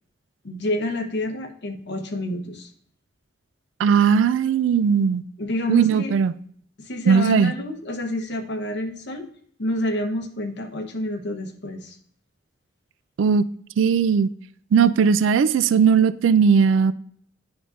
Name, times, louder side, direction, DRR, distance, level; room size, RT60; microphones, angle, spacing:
voice 1, 0.4-2.7 5.4-6.1 6.8-9.3 9.6-12.0, left 1 dB, 65° left, 4 dB, 1.0 m, -28 dB
voice 2, 3.8-5.2 5.7-6.3 7.1-7.5 13.2-13.4 13.8-14.3 14.7-16.9, right 6 dB, 85° right, 15 dB, 0.3 m, -18 dB
9.6 x 5.1 x 2.5 m, 0.62 s
head